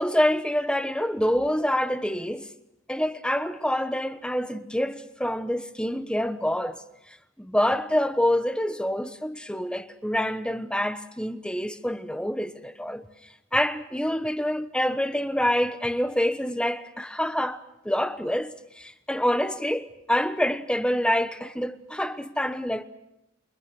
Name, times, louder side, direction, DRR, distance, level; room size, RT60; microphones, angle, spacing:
voice 1, 0.0-2.5 2.9-6.8 7.1-13.0 13.5-22.8, equal, 5° left, 1.1 m, -26 dB
29.0 x 24.0 x 6.2 m
head